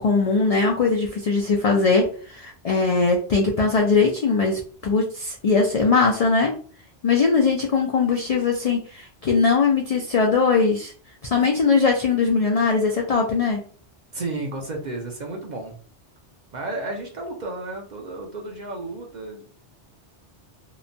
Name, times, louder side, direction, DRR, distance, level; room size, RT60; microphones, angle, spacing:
voice 1, 0.0-6.5 7.0-10.9 11.2-13.6, left 4 dB, 60° left, 1 dB, 0.3 m, -20 dB
voice 2, 14.1-15.7 16.5-19.5, right 2 dB, 50° right, 1 dB, 0.6 m, -32 dB
2.9 x 2.1 x 2.6 m, 0.43 s
omnidirectional pair, 1.1 m